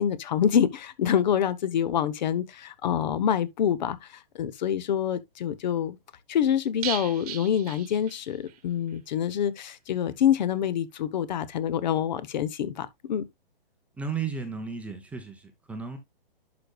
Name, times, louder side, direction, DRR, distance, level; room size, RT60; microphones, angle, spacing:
voice 1, 0.0-6.0 6.3-13.2, left 9 dB, 50° left, 1.0 m, -26 dB
sound 1, 6.8-8.6 8.9-9.0 9.3-9.4, right 10 dB, 40° right, 1.2 m, -37 dB
voice 2, 14.0-16.0, right 5 dB, 5° right, 0.7 m, -34 dB
11.0 x 5.2 x 2.3 m
hypercardioid pair, 145°, 29 cm